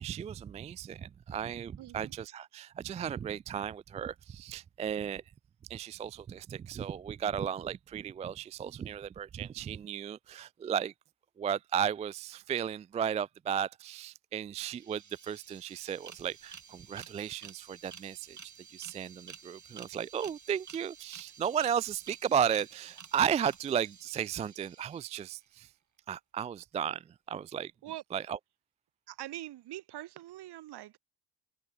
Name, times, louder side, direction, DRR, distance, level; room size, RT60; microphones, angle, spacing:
voice 1, 0.0-5.2 5.7-10.9 11.4-18.4 18.7-25.7 26.1-27.0 27.3-27.7 28.1-28.4, right 8 dB, 15° right, 0.3 m, -34 dB
voice 2, 1.8-2.1 27.8-28.0 29.1-31.0, right 14 dB, 50° right, 2.5 m, -43 dB
sound 1, 14.7-25.4, right 6 dB, 35° right, 7.8 m, -52 dB
open air
figure-of-eight pair, 55°, 49 cm